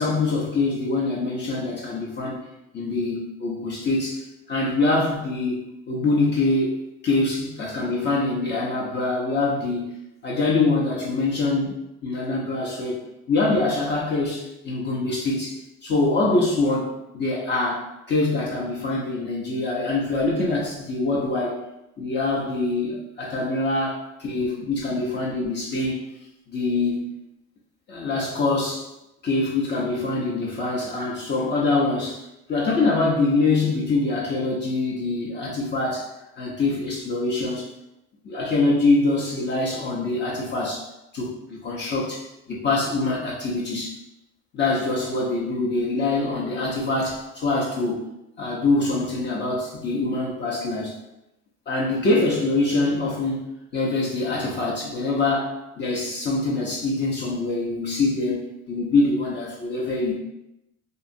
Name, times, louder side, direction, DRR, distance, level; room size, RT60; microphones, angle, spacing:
voice 1, 0.0-2.4 2.7-4.2 4.5-6.7 7.0-10.0 10.2-11.7 12.0-13.0 13.3-21.6 22.0-26.0 26.5-27.1 27.9-28.9 29.2-32.2 32.5-36.1 36.4-37.6 38.2-40.8 41.1-42.2 42.5-43.9 44.5-48.1 48.4-50.9 51.7-53.4 53.7-60.2, left 3 dB, 35° left, -4 dB, 0.5 m, -24 dB
2.6 x 2.3 x 2.5 m, 0.90 s
cardioid pair, 135°, 30 cm